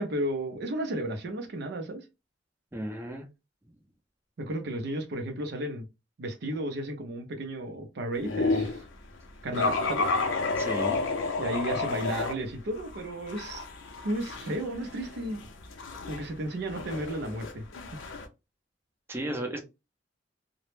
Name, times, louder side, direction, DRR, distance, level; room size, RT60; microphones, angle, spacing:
voice 1, 0.0-2.0 4.4-5.9 6.2-8.8 9.4-10.1 11.4-13.7 14.0-15.4 16.1-17.6, right 1 dB, 60° right, 0.5 m, -33 dB
voice 2, 2.7-3.3 10.6-11.1 19.1-19.6, right 1 dB, 15° right, 0.5 m, -34 dB
sound 1, 8.2-8.8 9.5-12.3 12.8-18.3, left 3 dB, 90° left, 0.5 m, -31 dB
2.0 x 2.0 x 3.0 m
head